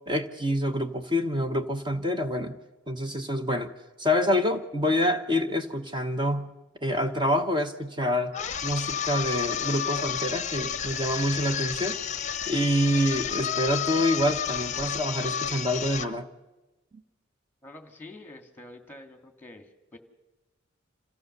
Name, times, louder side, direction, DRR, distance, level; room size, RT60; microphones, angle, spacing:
voice 1, 0.1-2.6 2.9-3.7 4.0-6.5 6.8-8.3 8.6-12.0 12.5-16.3, left 1 dB, 25° right, 6 dB, 1.1 m, -27 dB
sound 1, 8.3-16.2, left 8 dB, 35° left, 0.7 m, -31 dB
voice 2, 17.6-20.0, left 2 dB, 10° left, 5 dB, 2.2 m, -47 dB
27.0 x 15.5 x 6.8 m, 1.1 s
head